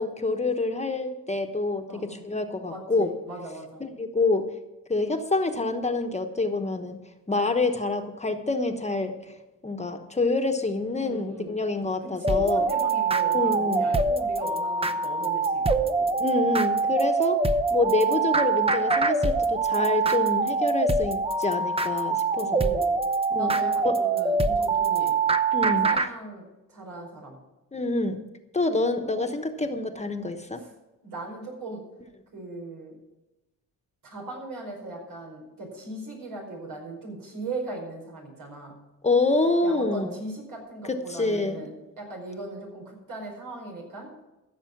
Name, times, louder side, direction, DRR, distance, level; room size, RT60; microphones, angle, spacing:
voice 1, 0.0-3.1 3.8-4.5 4.9-7.0 7.3-9.3 9.6-12.7 13.3-13.9 16.2-17.4 17.7-22.5 23.3-23.6 23.8-24.0 25.5-25.9 27.7-28.2 28.5-30.6 39.0-40.2 40.9-41.6, left 3 dB, 20° left, 6 dB, 1.1 m, -27 dB
voice 2, 1.9-2.3 2.6-3.8 11.0-11.6 12.0-16.1 22.3-22.9 23.4-25.2 25.6-27.4 29.0-29.3 29.6-29.7 30.6-30.7 31.0-31.8 32.3-33.0 34.0-38.8 39.6-44.1, right 2 dB, 80° right, 0 dB, 5.1 m, -39 dB
sound 1, 12.2-26.1, right 4 dB, 15° right, 0.7 m, -24 dB
15.5 x 6.8 x 6.0 m, 1.0 s
cardioid pair, 105°, 33 cm